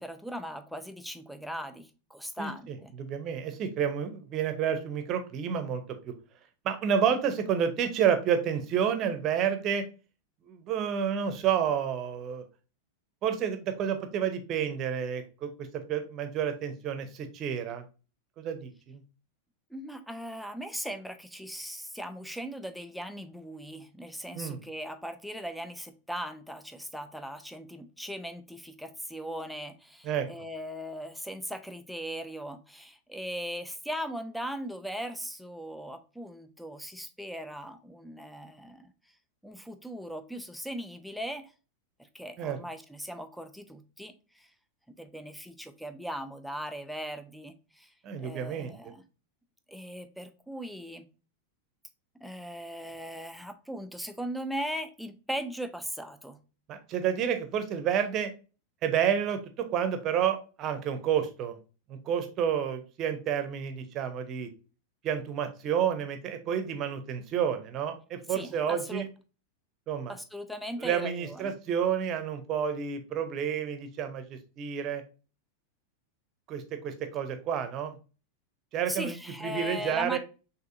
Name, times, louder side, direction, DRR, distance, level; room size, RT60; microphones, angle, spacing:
voice 1, 0.0-2.9 19.7-38.9 39.4-41.5 42.1-44.5 44.9-47.9 48.2-49.0 49.7-51.1 52.2-56.4 68.3-69.1 70.1-71.6 78.9-80.2, equal, ahead, 9 dB, 0.5 m, -39 dB
voice 2, 2.4-6.1 6.6-9.8 10.5-12.4 13.2-17.8 18.4-19.0 24.3-24.6 30.0-30.3 42.4-42.6 48.0-48.7 56.7-58.3 58.8-61.6 61.9-64.5 65.0-69.1 69.9-70.1 70.8-75.0 76.5-77.9 78.7-79.2 79.4-80.2, right 8 dB, 35° right, 8 dB, 0.8 m, -30 dB
6.1 x 2.7 x 2.5 m, 0.34 s
figure-of-eight pair, 90°, 0 cm